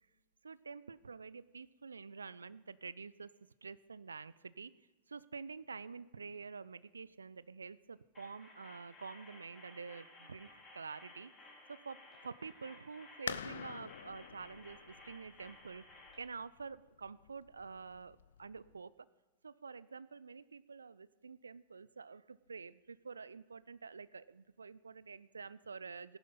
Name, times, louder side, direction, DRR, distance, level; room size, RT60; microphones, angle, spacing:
voice 1, 0.4-3.3 3.6-4.7 5.1-11.3 11.7-18.9 19.4-26.2, right 5 dB, 75° right, 19 dB, 0.3 m, -48 dB
sound 1, 8.1-16.1, left 2 dB, 15° left, 4.5 m, -57 dB
sound 2, 13.3-18.7, left 8 dB, 65° left, 0.4 m, -47 dB
16.0 x 11.0 x 4.0 m, 1.2 s
figure-of-eight pair, 90°, 0 cm